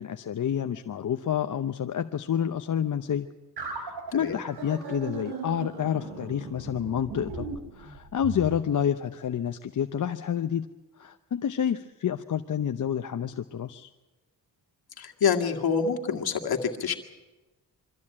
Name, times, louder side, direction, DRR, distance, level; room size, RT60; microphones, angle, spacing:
voice 1, 0.0-3.3 3.8-7.5 7.7-10.7 11.0-13.9, left 9 dB, 50° left, 7 dB, 0.8 m, -29 dB
sound 1, 3.6-8.5, right 4 dB, 75° right, 3.8 m, -38 dB
voice 2, 15.0-17.0, left 6 dB, 65° left, 3 dB, 2.1 m, -26 dB
23.5 x 14.0 x 8.7 m, 1.2 s
cardioid pair, 75°, 39 cm